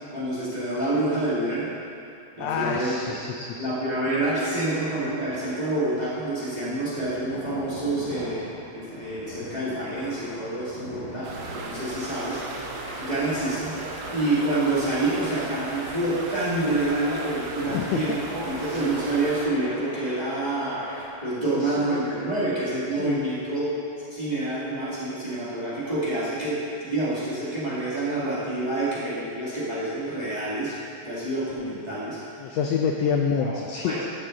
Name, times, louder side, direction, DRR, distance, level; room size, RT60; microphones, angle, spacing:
voice 1, 0.1-1.7 2.4-3.2 3.6-12.7 13.0-13.8 14.1-20.9 21.2-23.8 24.1-30.7 31.0-32.2 32.5-32.6 33.4-34.0, right 2 dB, 15° right, -10 dB, 1.9 m, -27 dB
voice 2, 2.4-3.7 17.6-18.0 18.6-18.8 21.5-22.2 23.0-23.2 32.4-34.1, left 6 dB, 80° left, 3 dB, 1.5 m, -28 dB
sound 1, 4.1-21.0, left 1 dB, 60° left, 3.6 m, -42 dB
sound 2, 11.2-19.5, right 3 dB, 70° right, 2.0 m, -36 dB
14.5 x 6.1 x 3.8 m, 2.6 s
omnidirectional pair, 3.4 m